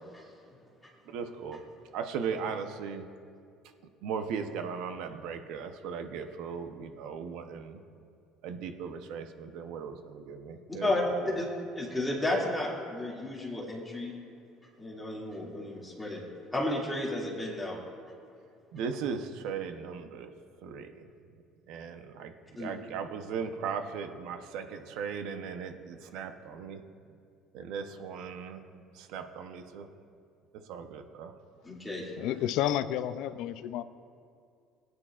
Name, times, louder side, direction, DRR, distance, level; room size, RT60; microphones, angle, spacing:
voice 1, 1.1-1.6 1.9-3.0 4.0-7.8 8.4-11.4 18.7-20.3 20.6-21.1 21.7-22.3 22.6-26.8 27.5-28.6 29.0-29.9 30.7-31.3 32.4-32.5, right 6 dB, 75° right, 7 dB, 0.8 m, -37 dB
voice 2, 11.8-14.1 14.8-16.2 16.5-17.8 22.6-22.7 31.7-32.0, left 2 dB, 5° left, -4 dB, 2.3 m, -32 dB
voice 3, 32.2-33.8, left 11 dB, 70° left, 14 dB, 0.4 m, -30 dB
21.0 x 9.6 x 2.4 m, 2.4 s
cardioid pair, 145°, 0 cm